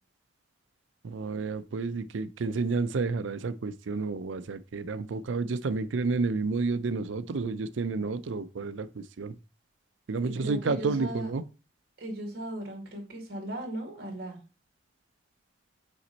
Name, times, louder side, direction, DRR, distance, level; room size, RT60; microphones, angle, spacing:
voice 1, 1.0-9.4 10.1-11.4, right 4 dB, 85° right, 0.5 m, -30 dB
voice 2, 10.4-11.3 12.0-14.4, right 1 dB, 55° right, 2.2 m, -37 dB
5.8 x 4.3 x 4.0 m
head